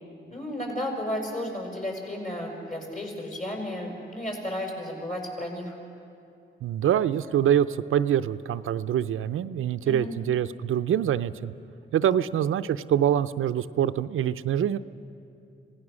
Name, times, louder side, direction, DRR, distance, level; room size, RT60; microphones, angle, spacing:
voice 1, 0.3-5.7 9.8-10.1 12.1-12.3, left 1 dB, 40° left, 0 dB, 5.4 m, -33 dB
voice 2, 6.6-11.5 11.9-14.8, right 10 dB, 75° right, 11 dB, 0.5 m, -25 dB
26.0 x 17.5 x 6.3 m, 2.6 s
cardioid pair, 100°, 21 cm